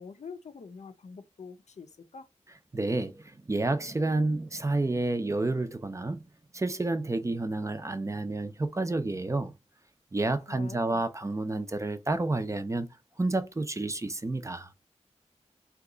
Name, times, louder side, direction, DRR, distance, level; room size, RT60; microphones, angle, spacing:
voice 1, 0.0-2.3 10.5-11.0, left 5 dB, 70° left, 0.5 m, -45 dB
voice 2, 2.7-6.2 6.5-9.5 10.1-12.9 13.2-14.7, right 2 dB, 25° right, 0.4 m, -30 dB
2.9 x 2.3 x 3.7 m
wide cardioid pair, 95°, 12 cm